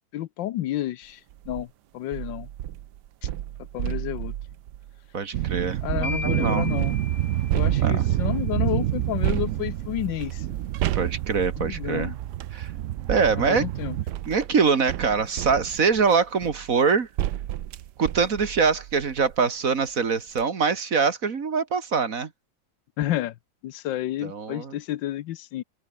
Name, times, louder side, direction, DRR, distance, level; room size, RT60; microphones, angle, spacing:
voice 1, 0.1-1.2 1.5-1.7 1.9-2.5 3.2-3.3 3.7-4.3 5.8-7.0 7.5-10.5 11.6-12.2 13.4-14.0 23.0-23.4 23.6-25.6, left 13 dB, 80° left, 1.4 m, -30 dB
sound 1, 1.3-1.6 2.1-6.2 6.8-8.3 9.2-12.6 13.5-19.5 19.9-20.0 20.3-20.4, right 12 dB, 70° right, 1.3 m, -33 dB
voice 2, 5.1-6.7 7.8-8.1 10.9-12.1 12.5-12.7 13.1-13.7 14.3-17.1 18.0-22.3 24.2-24.8, right 5 dB, 50° right, 2.0 m, -24 dB
sound 2, 5.3-14.0, right 13 dB, 85° right, 0.6 m, -27 dB
sound 3, 6.0-8.1, left 4 dB, 55° left, 3.9 m, -37 dB
open air
omnidirectional pair, 2.0 m